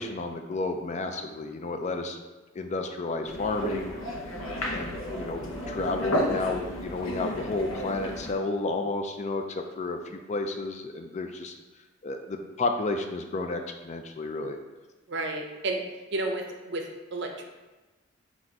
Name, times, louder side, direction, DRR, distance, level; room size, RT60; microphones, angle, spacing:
voice 1, 0.0-2.2 2.5-3.9 4.7-11.5 12.0-14.6, left 3 dB, 35° left, 5 dB, 0.3 m, -31 dB
sound 1, 3.2-8.3, equal, 85° left, 0.7 m, -32 dB
voice 2, 15.1-15.8 16.1-17.4, right 2 dB, 60° right, 3 dB, 0.5 m, -32 dB
4.1 x 2.5 x 4.6 m, 1.2 s
head